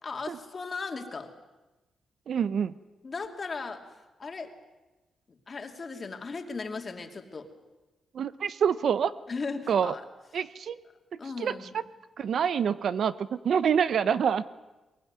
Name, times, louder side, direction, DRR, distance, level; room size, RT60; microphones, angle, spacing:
voice 1, 0.0-1.3 3.0-3.8 4.2-4.5 5.3-7.5 9.3-10.0 11.2-11.8, left 4 dB, 35° left, 4 dB, 2.7 m, -37 dB
voice 2, 2.3-2.7 8.1-9.1 9.7-9.9 10.3-10.8 11.4-11.8 12.2-14.4, right 7 dB, 65° right, 15 dB, 0.8 m, -26 dB
22.5 x 22.0 x 9.5 m, 1.1 s
wide cardioid pair, 135°, 0 cm